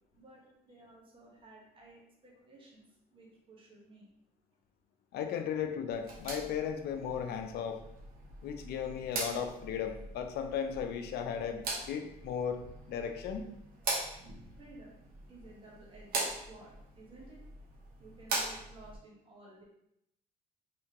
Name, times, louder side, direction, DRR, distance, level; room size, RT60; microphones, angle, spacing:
voice 1, 0.0-2.8 3.1-4.1 14.5-14.9 15.3-17.4 18.0-19.6, right 2 dB, 30° right, -3 dB, 1.1 m, -55 dB
voice 2, 5.1-7.8 8.4-12.6 12.9-13.5, left 8 dB, 70° left, 6 dB, 0.5 m, -36 dB
sound 1, 5.9-19.0, right 3 dB, 60° right, 1.0 m, -41 dB
3.4 x 2.8 x 2.9 m, 0.79 s
cardioid pair, 110°, 17 cm